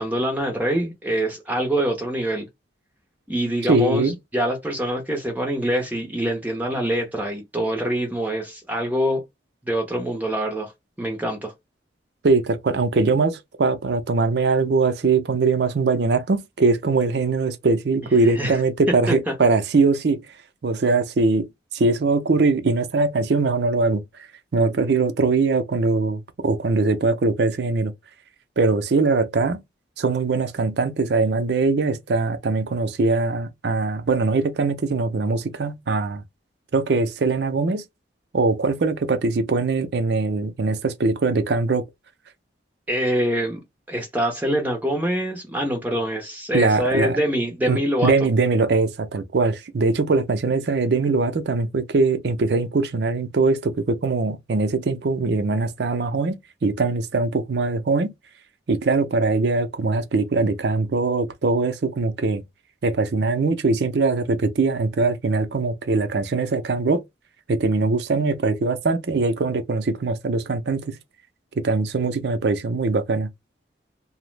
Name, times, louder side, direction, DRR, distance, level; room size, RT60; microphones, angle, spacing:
voice 1, 0.0-2.5 3.3-9.2 9.6-10.7 11.0-11.5 18.2-18.6 19.3-19.4 42.9-43.6 43.9-48.1, equal, 10° right, 0.5 m, -25 dB
voice 2, 3.7-4.1 12.2-20.2 20.6-21.5 21.7-24.0 24.5-27.9 28.6-29.6 30.0-36.2 36.7-37.8 38.3-41.8 46.5-47.2 47.7-58.1 58.7-62.4 62.8-67.0 67.5-71.0 71.6-73.3, right 3 dB, 60° right, 0.4 m, -21 dB
2.8 x 2.0 x 3.1 m
head